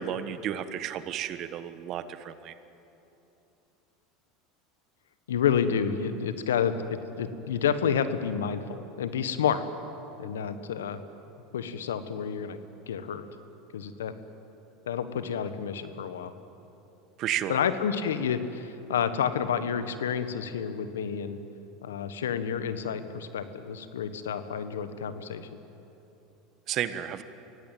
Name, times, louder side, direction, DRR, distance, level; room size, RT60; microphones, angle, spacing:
voice 1, 0.0-2.5 17.2-17.6 26.7-27.2, right 10 dB, 50° right, 12 dB, 1.3 m, -32 dB
voice 2, 5.3-9.6 10.2-11.0 11.5-12.6 12.9-13.2 13.7-14.1 14.9-16.3 17.5-21.4 21.8-25.5, left 7 dB, 85° left, 11 dB, 1.3 m, -29 dB
24.0 x 17.0 x 9.1 m, 3.0 s
hypercardioid pair, 90°, 0 cm